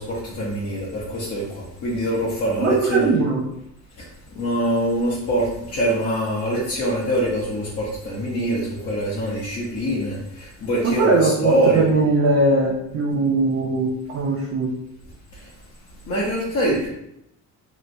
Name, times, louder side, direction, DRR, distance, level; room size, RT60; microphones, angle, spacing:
voice 1, 0.0-3.1 4.0-4.1 4.3-11.9 15.3-15.5 16.0-16.9, right 1 dB, 50° left, -7 dB, 0.7 m, -24 dB
voice 2, 2.6-3.4 10.8-14.7, right 3 dB, 45° right, -1 dB, 0.4 m, -20 dB
3.2 x 2.9 x 2.5 m, 0.80 s
cardioid pair, 180°, 32 cm